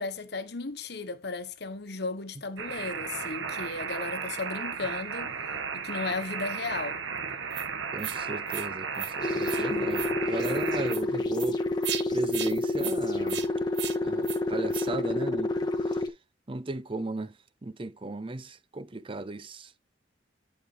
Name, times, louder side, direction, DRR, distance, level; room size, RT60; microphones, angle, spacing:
voice 1, 0.0-5.3 5.7-7.0, left 3 dB, 60° left, 1.1 m, -35 dB
sound 1, 2.6-10.9, right 6 dB, 85° right, 1.2 m, -34 dB
sound 2, 7.5-7.7 8.0-8.2 8.5-8.7 8.9-9.1 9.4-9.6 9.9-10.1 10.4-10.5 10.9-11.0 11.3-11.5 11.8-12.0 12.3-12.5 12.8-13.0 13.3-13.5 13.7-14.0 14.2-14.4 14.7-14.9, right 11 dB, 60° right, 1.0 m, -36 dB
voice 2, 7.9-11.6 12.1-13.4 14.0-15.5 16.5-17.3 17.6-19.7, right 2 dB, 25° right, 0.6 m, -36 dB
sound 3, 9.2-16.1, left 2 dB, 20° left, 1.2 m, -29 dB
11.0 x 4.9 x 3.3 m
head